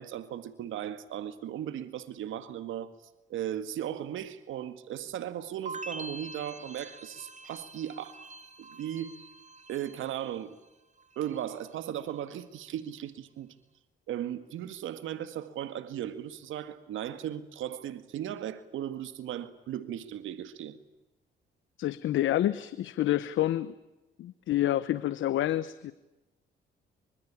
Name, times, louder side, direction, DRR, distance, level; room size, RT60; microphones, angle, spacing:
voice 1, 0.0-2.9 3.3-8.3 8.6-9.2 9.7-10.6 11.2-13.5 14.1-20.8, right 11 dB, 80° right, 1.9 m, -37 dB
sound 1, 5.7-10.7 11.0-11.6, right 2 dB, 35° right, 2.7 m, -45 dB
voice 2, 21.8-23.7 24.2-25.9, left 13 dB, 75° left, 1.1 m, -28 dB
26.0 x 25.0 x 8.5 m
cardioid pair, 90°, 20 cm